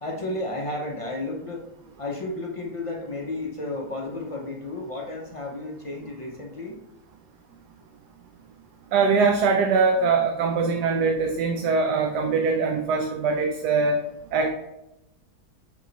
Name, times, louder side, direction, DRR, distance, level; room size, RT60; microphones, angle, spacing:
voice 1, 0.0-1.6 2.0-6.8, left 2 dB, 45° left, -1 dB, 0.4 m, -32 dB
voice 2, 8.9-14.0 14.3-14.5, right 4 dB, 80° right, 4 dB, 1.2 m, -22 dB
8.3 x 3.0 x 3.9 m, 0.89 s
omnidirectional pair, 1.7 m